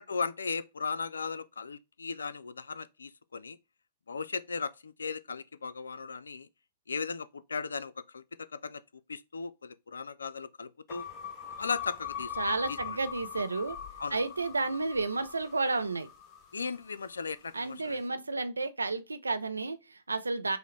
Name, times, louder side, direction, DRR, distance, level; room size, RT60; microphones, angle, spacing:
voice 1, 0.0-3.6 4.1-6.5 6.9-8.2 8.5-8.8 9.1-11.0 11.6-12.3 12.7-13.0 14.0-14.2 16.5-18.0, left 5 dB, 80° left, 0.3 m, -37 dB
sound 1, 10.9-17.2, left 8 dB, 35° left, 0.6 m, -42 dB
voice 2, 12.4-13.8 14.1-16.1 17.5-20.6, right 3 dB, 90° right, 0.4 m, -31 dB
4.8 x 2.0 x 3.1 m
hypercardioid pair, 110°, 0 cm